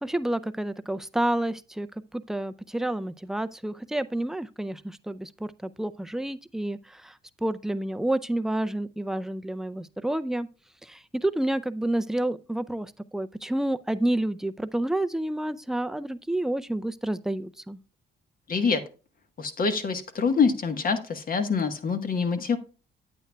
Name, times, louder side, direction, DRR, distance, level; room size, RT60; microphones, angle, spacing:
voice 1, 0.0-1.9 2.1-7.1 7.4-10.5 10.8-17.8, right 1 dB, ahead, 0.4 m, -29 dB
voice 2, 18.5-18.8 19.4-22.6, left 5 dB, 45° left, 1.3 m, -25 dB
9.0 x 8.8 x 2.2 m
cardioid pair, 90°, 20 cm